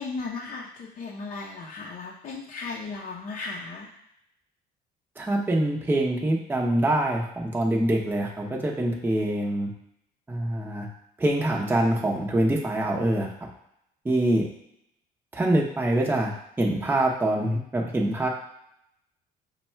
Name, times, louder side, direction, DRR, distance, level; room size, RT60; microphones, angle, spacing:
voice 1, 0.0-3.9, left 4 dB, 50° left, -3 dB, 0.7 m, -36 dB
voice 2, 5.2-9.7 10.3-10.9 11.2-13.3 14.0-14.4 15.3-16.3 16.6-18.3, right 1 dB, 10° right, -2 dB, 0.7 m, -24 dB
5.2 x 2.3 x 4.3 m, 0.77 s
cardioid pair, 110°, 17 cm